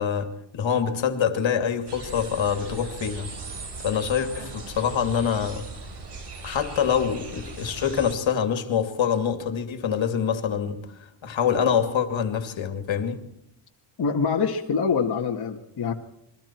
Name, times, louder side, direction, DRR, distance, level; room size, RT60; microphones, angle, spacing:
voice 1, 0.0-3.3 3.8-5.6 6.4-13.2, left 7 dB, 65° left, 2.8 m, -25 dB
sound 1, 1.9-8.2, right 3 dB, 55° right, 5.0 m, -38 dB
voice 2, 14.0-15.9, left 5 dB, 50° left, 1.9 m, -25 dB
29.0 x 22.5 x 4.6 m
cardioid pair, 130°, 49 cm